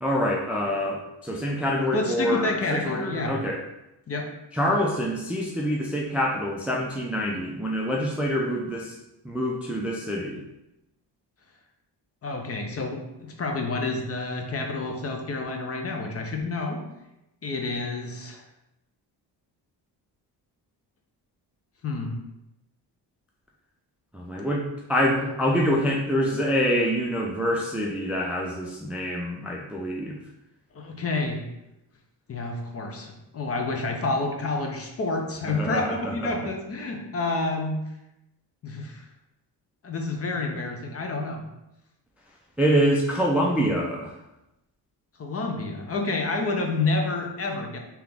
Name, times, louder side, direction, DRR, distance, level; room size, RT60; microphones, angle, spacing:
voice 1, 0.0-3.6 4.5-9.0 9.2-10.4 24.1-30.2 35.5-36.3 42.6-44.1, equal, 5° right, -2 dB, 0.3 m, -26 dB
voice 2, 1.9-3.4 4.1-4.3 12.2-16.8 17.4-18.4 21.8-22.2 30.7-31.4 32.3-37.8 38.6-39.0 39.8-41.4 45.2-47.8, left 3 dB, 35° left, 3 dB, 0.7 m, -29 dB
3.6 x 2.9 x 3.5 m, 0.91 s
cardioid pair, 110°, 42 cm